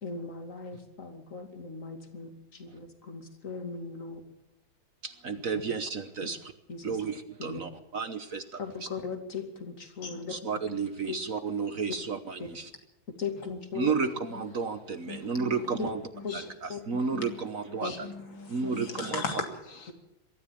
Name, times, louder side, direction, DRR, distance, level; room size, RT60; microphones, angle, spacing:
voice 1, 0.0-4.2 6.2-6.3 6.7-7.0 7.4-7.7 8.6-10.4 11.1-11.2 12.4-12.5 13.2-13.9 15.8-15.9 16.2-16.4 16.7-16.8 17.8-18.0, left 5 dB, 40° left, 5 dB, 2.9 m, -38 dB
voice 2, 5.0-6.5 6.8-8.9 10.3-12.7 13.7-16.0 16.3-18.1 18.5-19.2, right 5 dB, 50° right, 10 dB, 1.4 m, -32 dB
voice 3, 15.1-15.9 16.1-16.5 16.9-19.9, left 3 dB, 85° left, 4 dB, 3.6 m, -39 dB
22.5 x 14.0 x 8.7 m, 0.85 s
omnidirectional pair, 2.1 m